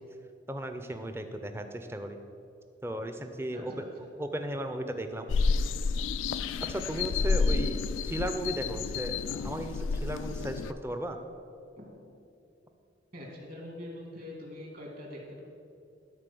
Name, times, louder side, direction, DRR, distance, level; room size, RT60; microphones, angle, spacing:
voice 1, 0.5-2.2 2.8-3.8 4.2-5.3 6.7-11.2, right 1 dB, 15° right, 7 dB, 0.5 m, -35 dB
voice 2, 3.5-3.9 6.8-7.3 11.8-11.9 13.1-15.4, left 1 dB, 50° right, -1 dB, 2.3 m, -44 dB
sound 1, 5.3-10.7, left 4 dB, 85° left, 0.3 m, -30 dB
12.5 x 4.2 x 6.9 m, 2.5 s
head